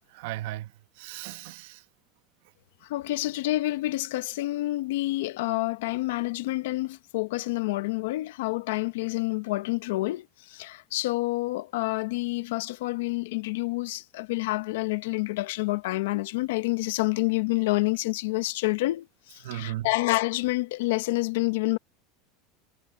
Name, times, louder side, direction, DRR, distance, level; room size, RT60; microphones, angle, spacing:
voice 1, 0.1-1.9 19.4-19.9, right 15 dB, 65° right, 1.0 m, -36 dB
voice 2, 2.8-21.8, left 20 dB, 85° left, 1.0 m, -28 dB
supercardioid pair, 165°, 0 cm